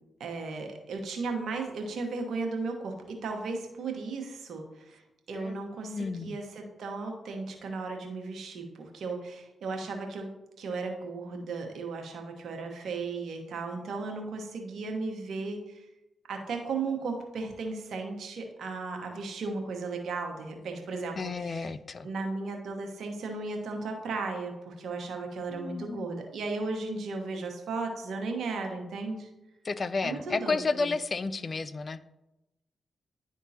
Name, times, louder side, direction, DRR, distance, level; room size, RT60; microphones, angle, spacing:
voice 1, 0.2-5.0 5.3-10.3 10.6-15.9 16.3-21.7 22.0-29.3 30.0-30.9, right 3 dB, 70° right, 3 dB, 1.2 m, -35 dB
voice 2, 5.9-6.4 21.2-22.1 25.5-26.1 29.6-32.0, left 4 dB, 50° left, 14 dB, 0.4 m, -32 dB
10.5 x 3.6 x 2.8 m, 0.94 s
hypercardioid pair, 40°, 0 cm